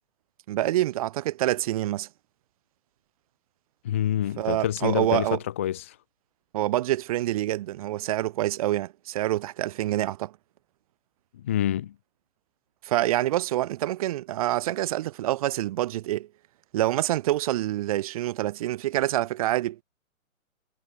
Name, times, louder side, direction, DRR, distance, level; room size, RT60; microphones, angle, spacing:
voice 1, 0.5-2.1 4.4-5.4 6.5-10.3 12.8-16.3 16.7-19.8, right 15 dB, 25° right, 3.2 m, -26 dB
voice 2, 3.8-6.0 11.4-11.9, left 11 dB, 10° left, 0.7 m, -27 dB
hypercardioid pair, 170°, 41 cm